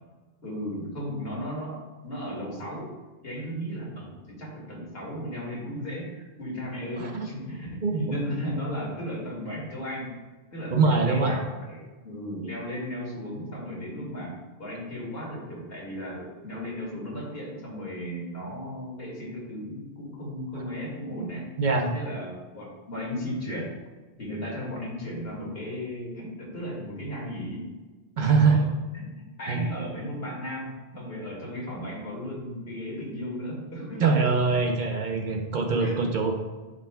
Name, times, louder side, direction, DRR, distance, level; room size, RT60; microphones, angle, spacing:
voice 1, 0.4-3.0 3.2-10.2 10.5-14.3 14.6-21.4 21.9-23.7 24.2-27.7 28.2-28.7 28.9-29.1 29.4-34.2 35.8-36.0, equal, 75° left, -4 dB, 2.3 m, -35 dB
voice 2, 7.0-7.3 7.8-8.2 10.7-11.4 21.2-21.3 21.6-21.9 28.2-28.6 29.5-29.6 34.0-36.4, right 4 dB, 50° right, 2 dB, 0.9 m, -23 dB
11.0 x 5.1 x 2.3 m, 1.3 s
omnidirectional pair, 1.0 m